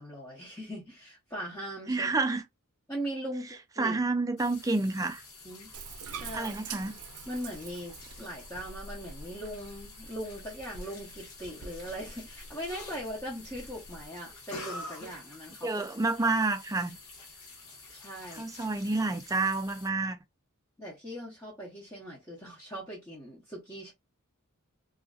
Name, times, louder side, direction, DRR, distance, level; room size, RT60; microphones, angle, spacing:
voice 1, 0.0-2.1 2.9-4.0 5.4-5.7 6.1-6.6 7.3-15.8 17.9-18.5 20.8-23.9, equal, 15° left, 0.8 m, -40 dB
voice 2, 1.9-2.5 3.8-5.2 6.3-7.0 15.6-17.0 18.3-20.2, right 3 dB, 15° right, 0.3 m, -29 dB
sound 1, 4.4-19.9, left 3 dB, 80° left, 1.2 m, -48 dB
Bathtub (filling or washing), 5.7-14.1, right 4 dB, 85° right, 0.5 m, -46 dB
2.5 x 2.4 x 2.3 m
head